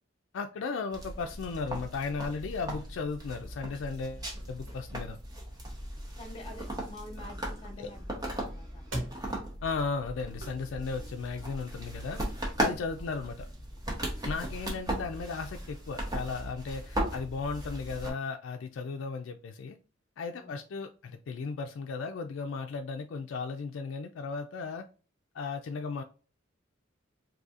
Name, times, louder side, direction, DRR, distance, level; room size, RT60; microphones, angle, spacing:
voice 1, 0.3-5.2 7.8-7.9 9.6-12.2 12.6-13.5 14.2-19.8 20.2-24.9 25.3-26.0, left 4 dB, 65° left, 0.3 m, -35 dB
sound 1, 0.9-18.1, right 1 dB, 20° right, 0.9 m, -37 dB
sound 2, 3.9-10.9, right 1 dB, 65° right, 1.2 m, -46 dB
voice 2, 6.2-8.9 13.0-13.3 20.3-20.5, left 1 dB, 30° left, 1.1 m, -48 dB
3.9 x 2.7 x 2.4 m
head